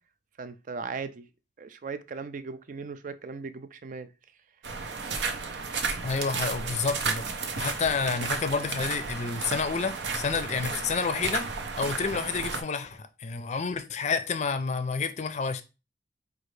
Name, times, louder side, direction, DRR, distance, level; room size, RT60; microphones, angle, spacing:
voice 1, 0.4-1.3 1.6-4.1, right 4 dB, 45° right, 0.4 m, -38 dB
sound 1, 4.6-12.6, right 4 dB, 80° right, 0.7 m, -33 dB
voice 2, 6.0-7.2 7.6-11.5 11.8-15.6, left 5 dB, 40° left, 0.4 m, -29 dB
4.9 x 2.5 x 3.2 m
head